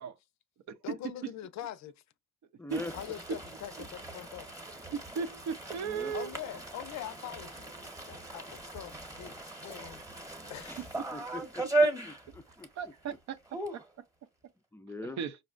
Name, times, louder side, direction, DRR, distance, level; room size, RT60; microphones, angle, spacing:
voice 1, 0.8-1.9 2.9-4.5 6.1-7.7 8.1-10.0 10.4-10.9, left 12 dB, 65° left, 0.5 m, -43 dB
voice 2, 2.6-2.9 5.8-6.2 10.7-10.8 11.1-12.7 14.7-15.2, left 2 dB, 10° left, 0.3 m, -43 dB
sound 1, 2.7-12.8 13.1-13.2 13.5-13.9, right 2 dB, 10° right, 0.9 m, -36 dB
voice 3, 4.9-6.3 12.8-13.4 13.7-13.8 15.2-15.4, right 6 dB, 65° right, 0.6 m, -35 dB
5.1 x 2.1 x 2.4 m
cardioid pair, 90°, 30 cm